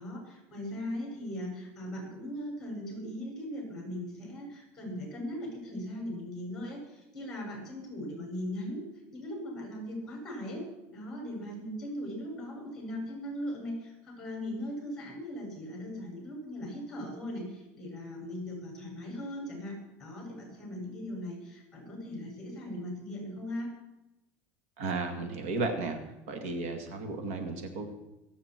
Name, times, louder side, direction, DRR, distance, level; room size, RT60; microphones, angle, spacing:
voice 1, 0.0-8.8 9.1-23.7, left 1 dB, 10° left, -1 dB, 5.9 m, -39 dB
voice 2, 24.8-26.0 26.3-27.9, right 3 dB, 80° right, 6 dB, 2.1 m, -34 dB
25.0 x 8.7 x 4.5 m, 0.97 s
cardioid pair, 170°, 7 cm